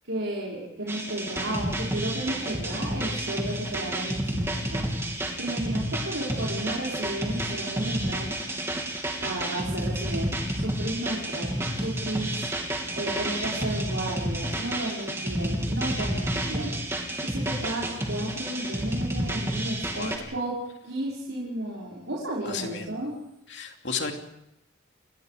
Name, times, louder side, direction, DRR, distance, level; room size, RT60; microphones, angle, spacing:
voice 1, 0.1-4.9 5.4-8.3 9.2-12.5 12.9-16.8 17.2-20.5 20.8-23.1, right 1 dB, 85° right, -5 dB, 5.6 m, -33 dB
sound 1, 0.9-20.2, right 1 dB, 15° right, 3.0 m, -30 dB
voice 2, 22.4-22.9 23.5-24.1, left 5 dB, 60° left, 3 dB, 2.9 m, -33 dB
29.0 x 21.0 x 5.1 m, 0.83 s
head